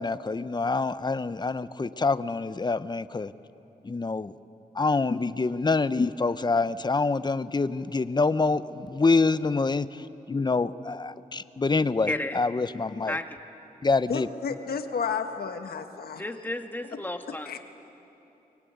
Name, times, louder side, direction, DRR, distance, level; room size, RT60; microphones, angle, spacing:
voice 1, 0.0-3.3 3.8-4.3 4.7-13.2 13.8-14.3, left 3 dB, 30° left, 0.7 m, -26 dB
voice 2, 12.1-12.4 13.1-13.4 16.2-17.5, left 1 dB, 10° left, 1.7 m, -32 dB
voice 3, 14.1-16.2 17.3-17.6, left 6 dB, 85° left, 1.5 m, -32 dB
24.0 x 21.5 x 9.4 m
cardioid pair, 80°, 16 cm